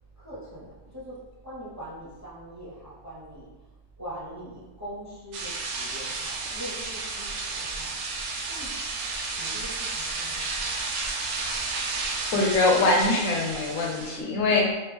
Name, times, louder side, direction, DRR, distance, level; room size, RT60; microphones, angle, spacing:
voice 1, 0.2-1.2 1.4-3.5 4.0-7.9 8.4-8.7 9.4-10.5, equal, 15° right, -10 dB, 1.1 m, -42 dB
sound 1, 5.3-14.2, right 3 dB, 70° right, 0.8 m, -32 dB
voice 2, 12.0-14.7, left 2 dB, 75° left, 0 dB, 1.0 m, -23 dB
3.0 x 2.9 x 3.4 m, 1.2 s
omnidirectional pair, 1.4 m